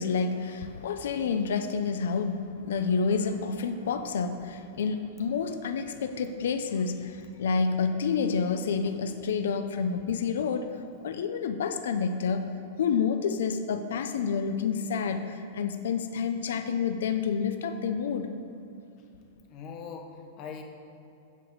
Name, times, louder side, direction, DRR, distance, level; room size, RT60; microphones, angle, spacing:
voice 1, 0.0-10.7 11.0-12.5 12.8-18.3, left 5 dB, 85° left, 8 dB, 0.7 m, -29 dB
voice 2, 19.5-20.6, left 6 dB, 30° left, 2 dB, 1.2 m, -41 dB
13.5 x 5.1 x 8.0 m, 2.6 s
supercardioid pair, 170°, 0 cm